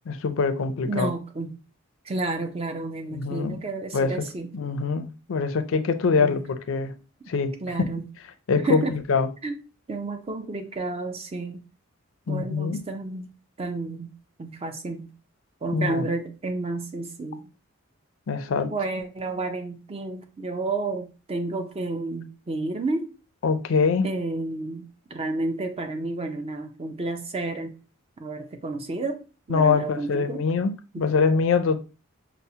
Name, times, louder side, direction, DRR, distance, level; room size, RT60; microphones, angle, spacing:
voice 1, 0.1-1.1 3.1-3.6 3.9-4.1 4.5-6.9 7.3-7.8 8.5-8.8 9.1-9.3 12.3-12.8 15.7-16.1 18.3-18.7 23.4-24.1 29.5-31.8, left 5 dB, 65° left, 0.4 m, -24 dB
voice 2, 0.9-1.5 2.1-4.5 6.1-6.4 7.6-8.1 8.6-9.0 9.4-9.6 9.9-11.6 12.3-13.3 13.6-14.1 14.4-15.1 15.6-17.4 18.6-23.1 24.0-27.8 28.2-30.4 30.9-31.1, right 3 dB, 30° right, 0.5 m, -31 dB
5.4 x 2.0 x 2.7 m
head